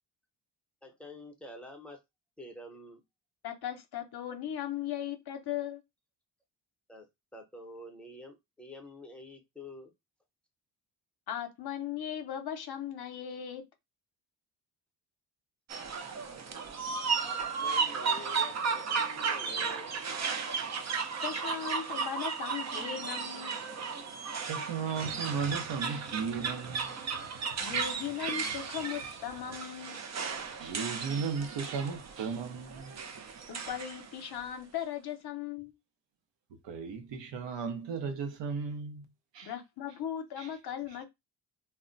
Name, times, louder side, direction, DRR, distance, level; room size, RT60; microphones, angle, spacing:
voice 1, 0.8-2.0 2.4-3.0 6.9-7.1 7.3-9.9 17.2-19.9, left 1 dB, 5° left, 0.6 m, -48 dB
voice 2, 3.4-5.8 11.3-13.6 21.2-23.6 27.6-30.0 33.5-35.7 39.4-41.0, left 10 dB, 60° left, 0.7 m, -38 dB
sound 1, 15.7-34.1, right 5 dB, 40° right, 0.5 m, -35 dB
voice 3, 24.4-27.0 30.1-30.2 30.6-33.0 36.6-39.0 39.3-39.5 40.4-40.5, right 5 dB, 80° right, 0.8 m, -35 dB
2.1 x 2.1 x 3.8 m
cardioid pair, 115°, 43 cm